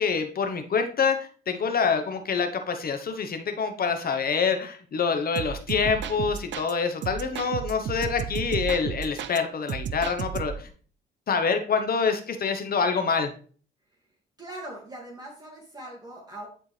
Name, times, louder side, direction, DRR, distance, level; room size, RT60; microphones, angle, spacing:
voice 1, 0.0-10.7 11.3-13.3, left 5 dB, 50° left, 7 dB, 1.0 m, -26 dB
sound 1, 5.4-6.7 7.0-9.4 9.7-10.7, right 8 dB, 65° right, 0.6 m, -33 dB
voice 2, 14.4-16.5, right 1 dB, 20° right, -3 dB, 2.1 m, -41 dB
9.9 x 4.5 x 3.3 m, 0.43 s
cardioid pair, 90°, 20 cm